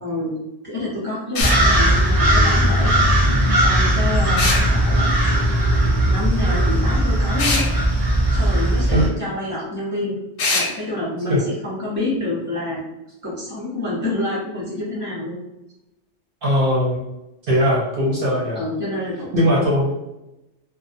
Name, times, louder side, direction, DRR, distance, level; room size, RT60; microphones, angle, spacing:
voice 1, 0.0-0.4 0.6-3.2 3.5-5.1 6.1-7.6 8.3-10.2 10.5-12.8 13.2-15.4 18.5-19.3 19.6-19.7, left 2 dB, 10° left, -7 dB, 0.6 m, -27 dB
sound 1, 1.3-1.6 4.4-4.6 7.4-7.7 10.4-10.7, left 3 dB, 60° left, 0.7 m, -21 dB
sound 2, 1.4-9.1, right 1 dB, 35° right, 0.4 m, -18 dB
voice 2, 16.4-17.0 17.5-18.6 19.3-19.9, equal, 55° right, -6 dB, 0.8 m, -19 dB
2.4 x 2.1 x 2.5 m, 0.95 s
omnidirectional pair, 1.2 m